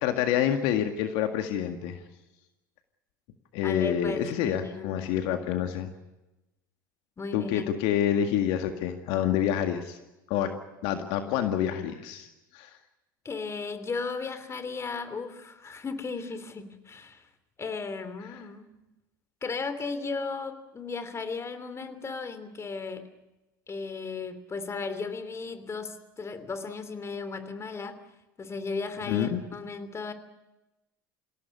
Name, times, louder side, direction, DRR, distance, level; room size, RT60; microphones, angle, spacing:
voice 1, 0.0-2.0 3.5-5.9 7.3-10.0 10.3-10.5 10.8-12.3 12.5-12.7 29.1-29.4, left 10 dB, 60° left, 6 dB, 1.9 m, -27 dB
voice 2, 3.6-5.0 7.2-7.7 13.2-17.3 17.6-18.7 19.4-23.1 23.7-28.0 28.4-30.1, left 4 dB, 25° left, 11 dB, 3.1 m, -35 dB
26.5 x 17.0 x 9.7 m, 1.0 s
hypercardioid pair, 75°, 11 cm